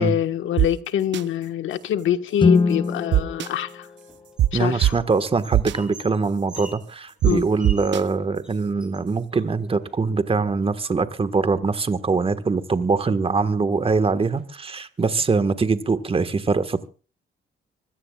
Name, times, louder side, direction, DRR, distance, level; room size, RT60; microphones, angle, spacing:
voice 1, 0.0-3.9 4.5-4.9 7.2-7.5, left 10 dB, 75° left, 1.4 m, -25 dB
sound 1, 0.6-0.7 1.1-1.2 3.1-3.5 4.4-4.5 4.8-4.9 5.5-5.7 7.2-7.3 7.6-8.0, right 13 dB, 65° right, 0.7 m, -18 dB
Guitar, 2.4-5.0, left 4 dB, 25° left, 0.8 m, -24 dB
sound 2, 3.9-5.1 5.3-8.1 8.4-8.5 8.8-9.9 10.6-11.3 12.4-12.5 12.8-13.3 13.8-14.0 14.4-14.5 15.0-15.8, right 1 dB, 5° right, 7.8 m, -45 dB
voice 2, 4.5-16.9, right 4 dB, 30° right, 1.5 m, -23 dB
25.5 x 16.0 x 2.4 m
cardioid pair, 90°, 20 cm